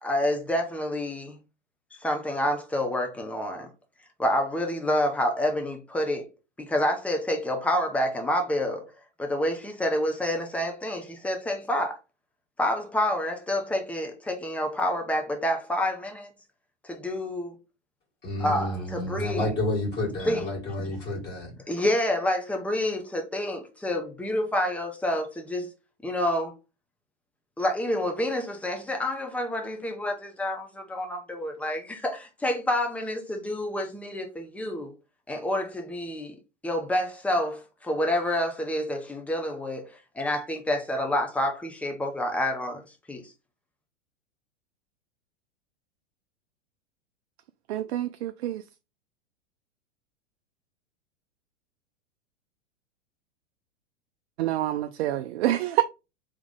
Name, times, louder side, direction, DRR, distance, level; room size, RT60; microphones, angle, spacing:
voice 1, 0.0-1.4 1.9-3.7 4.2-6.3 6.6-8.9 9.2-12.0 12.6-16.3 16.8-17.6 18.4-19.5 20.2-20.8 21.7-25.7 26.0-26.5 27.6-34.9 35.3-36.4 36.6-42.8 43.1-43.3, left 1 dB, 5° left, 0.8 m, -28 dB
voice 2, 18.2-21.5, left 1 dB, 30° left, 2.1 m, -30 dB
voice 3, 47.7-48.6 54.4-55.8, right 13 dB, 65° right, 0.5 m, -27 dB
3.6 x 3.2 x 3.6 m
hypercardioid pair, 105°, 35 cm